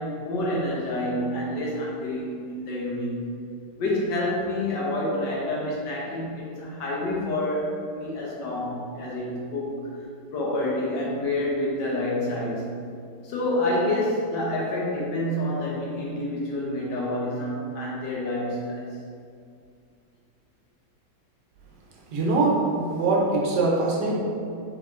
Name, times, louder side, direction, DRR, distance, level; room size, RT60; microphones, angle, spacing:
voice 1, 0.0-3.2 3.8-9.9 10.3-12.7 13.2-18.8, left 1 dB, 75° left, -4 dB, 1.5 m, -28 dB
voice 2, 22.1-22.6 22.9-24.2, right 3 dB, 75° right, -3 dB, 1.3 m, -22 dB
3.8 x 3.5 x 3.6 m, 2.3 s
omnidirectional pair, 1.9 m